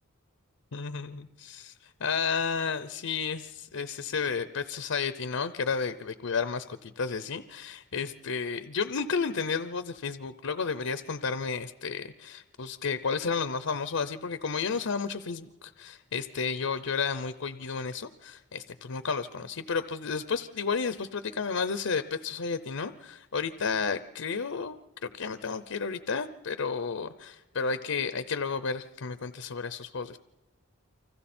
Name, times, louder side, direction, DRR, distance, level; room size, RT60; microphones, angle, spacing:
voice 1, 0.7-30.2, left 5 dB, 75° left, 12 dB, 0.7 m, -32 dB
30.0 x 25.0 x 4.4 m, 1.1 s
head